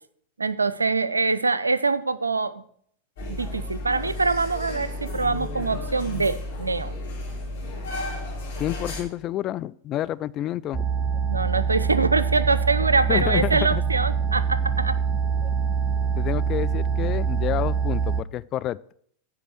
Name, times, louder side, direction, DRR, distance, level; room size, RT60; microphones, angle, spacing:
voice 1, 0.4-2.6 3.3-6.9 11.3-15.0, right 3 dB, 85° right, 0.4 m, -24 dB
sound 1, 3.2-9.0, left 1 dB, 60° left, 3.3 m, -33 dB
voice 2, 8.6-10.9 13.1-13.8 16.2-18.9, left 13 dB, 35° left, 0.3 m, -29 dB
sound 2, 10.7-18.2, right 6 dB, 20° right, 0.5 m, -24 dB
8.3 x 5.0 x 7.5 m
figure-of-eight pair, 90°, 0 cm